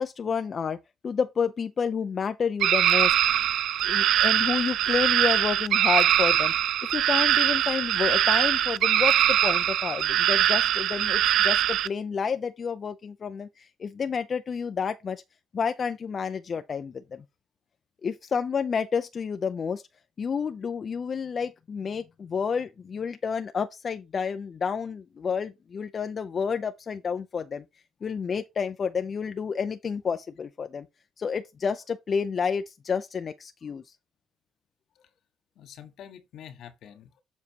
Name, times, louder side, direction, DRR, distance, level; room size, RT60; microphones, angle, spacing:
voice 1, 0.0-3.4 3.8-6.5 6.9-15.2 15.5-17.2 18.0-19.8 20.2-27.6 28.0-30.9 31.2-33.8, left 6 dB, 45° left, 0.5 m, -30 dB
sound 1, 2.6-11.9, right 11 dB, 80° right, 0.3 m, -22 dB
voice 2, 35.6-37.2, left 9 dB, 75° left, 1.2 m, -47 dB
7.3 x 4.1 x 4.5 m
cardioid pair, 90°, 0 cm